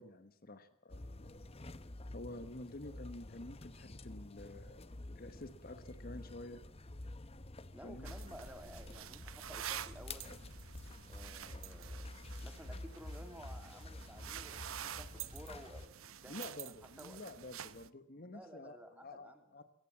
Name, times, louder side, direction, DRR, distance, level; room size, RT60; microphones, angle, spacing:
voice 1, 0.0-1.3 2.1-4.8 5.1-6.6 7.8-8.1 16.3-19.6, left 2 dB, 45° left, 10 dB, 1.2 m, -49 dB
sound 1, 0.9-15.9, left 2 dB, 30° left, 0.9 m, -49 dB
voice 2, 7.7-10.3 11.1-12.1 12.4-16.7 17.0-17.2 18.2-19.6, equal, 5° right, 7 dB, 2.6 m, -54 dB
sound 2, 8.0-17.9, right 10 dB, 75° right, 0.9 m, -48 dB
22.5 x 17.5 x 7.3 m, 0.69 s
head